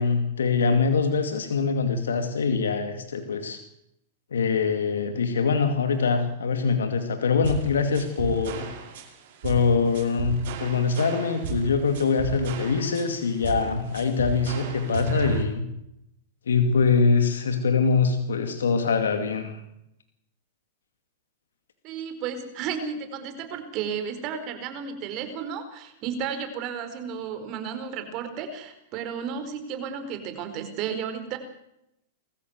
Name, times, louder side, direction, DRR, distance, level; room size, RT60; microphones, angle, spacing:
voice 1, 0.0-3.6 4.3-8.7 9.4-15.6 16.5-19.6, left 5 dB, 90° left, 7 dB, 2.4 m, -23 dB
sound 1, 7.4-15.4, right 7 dB, 65° right, 5.2 m, -34 dB
voice 2, 21.8-31.4, right 7 dB, 45° right, 9 dB, 4.7 m, -33 dB
22.5 x 15.0 x 8.2 m, 0.82 s
hypercardioid pair, 120°, 0 cm